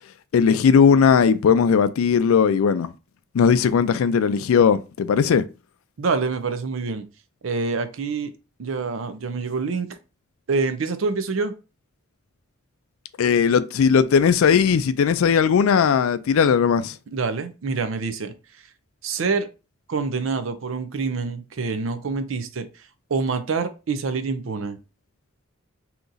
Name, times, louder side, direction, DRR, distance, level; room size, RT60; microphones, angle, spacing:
voice 1, 0.3-2.9 3.3-5.4 13.2-17.0, left 6 dB, 85° left, 0.4 m, -18 dB
voice 2, 6.0-7.1 7.4-8.3 8.6-9.9 10.5-11.5 17.1-18.3 19.0-19.5 19.9-22.7 23.1-24.8, right 4 dB, 70° right, 0.5 m, -26 dB
2.9 x 2.5 x 3.8 m
head